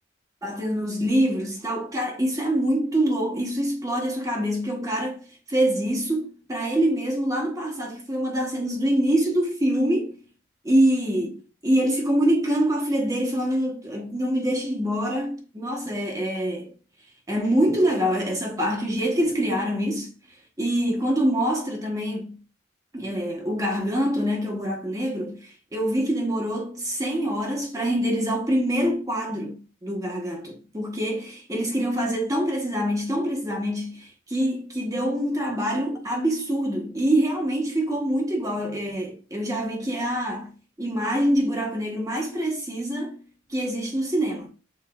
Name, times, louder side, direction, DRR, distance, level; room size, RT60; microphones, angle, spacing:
voice 1, 0.4-10.2 10.6-16.7 17.3-20.1 20.6-22.4 22.9-40.5 40.8-43.2 43.5-44.5, right 1 dB, 15° right, 0.9 m, -25 dB
5.9 x 3.9 x 2.3 m
head